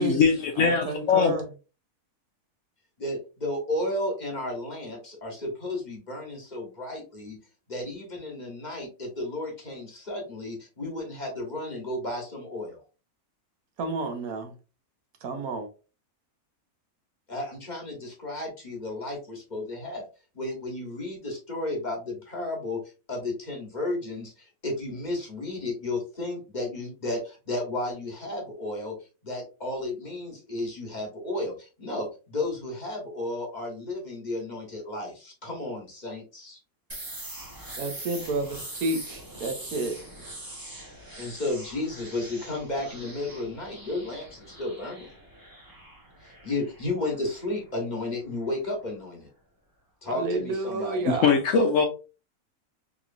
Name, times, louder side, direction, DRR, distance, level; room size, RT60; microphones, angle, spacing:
voice 1, 0.0-1.3 51.1-51.9, left 5 dB, 65° left, 4 dB, 0.8 m, -21 dB
voice 2, 0.6-1.5 13.8-14.5 15.2-15.7 37.8-40.0 50.1-51.3, right 3 dB, 75° right, 5 dB, 1.3 m, -30 dB
voice 3, 3.0-7.4 7.7-12.8 17.3-20.0 20.3-22.8 23.1-28.9 29.2-36.6 41.2-45.1 46.2-49.3 50.0-51.1, left 2 dB, 30° left, -1 dB, 1.1 m, -33 dB
sound 1, 36.9-48.5, right 1 dB, 20° right, 0.6 m, -43 dB
3.6 x 3.0 x 2.5 m, 0.32 s
omnidirectional pair, 1.6 m